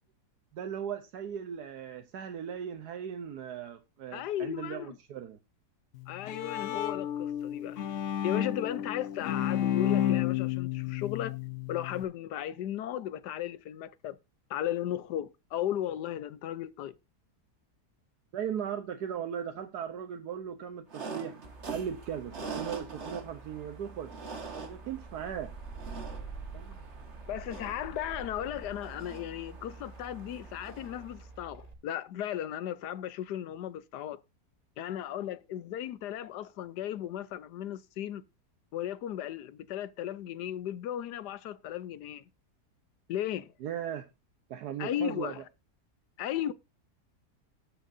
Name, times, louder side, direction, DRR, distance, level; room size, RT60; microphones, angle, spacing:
voice 1, 0.5-5.4 18.3-21.4 21.7-24.1 24.5-25.5 26.5-26.9 43.6-44.1 44.5-45.3, right 8 dB, 80° right, 1.4 m, -38 dB
voice 2, 4.1-5.0 6.1-7.8 8.2-11.4 11.7-14.2 14.5-16.9 27.3-34.2 34.8-38.2 38.7-42.2 43.1-43.5 44.8-45.4 46.2-46.5, left 11 dB, 90° left, 1.3 m, -36 dB
Bowed string instrument, 5.9-12.0, left 10 dB, 60° left, 1.0 m, -31 dB
sound 1, 20.9-31.2, right 4 dB, 45° right, 1.9 m, -44 dB
sound 2, 21.4-31.7, right 4 dB, 25° right, 1.4 m, -47 dB
19.0 x 6.4 x 2.6 m
omnidirectional pair, 1.7 m